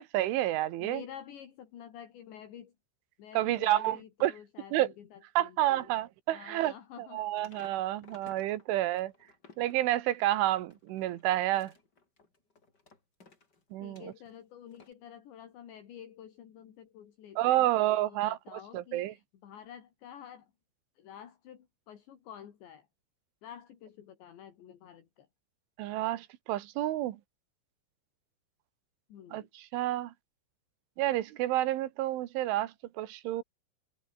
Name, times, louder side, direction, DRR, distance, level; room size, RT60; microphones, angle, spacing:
voice 1, 0.0-1.0 3.4-4.3 4.7-4.9 5.4-6.7 7.1-9.1 9.6-11.7 13.7-14.1 17.4-19.1 25.8-27.2 29.3-29.4 29.7-30.1 31.0-33.4, right 15 dB, 80° right, 3.8 m, -29 dB
voice 2, 0.8-2.7 3.2-5.9 6.3-7.3 13.8-20.5 21.0-22.9 23.4-25.3 29.1-29.5, left 9 dB, 65° left, 4.9 m, -49 dB
sound 1, 7.4-8.7 9.0-14.3 14.7-14.9, left 3 dB, 25° left, 3.8 m, -57 dB
omnidirectional pair, 5.6 m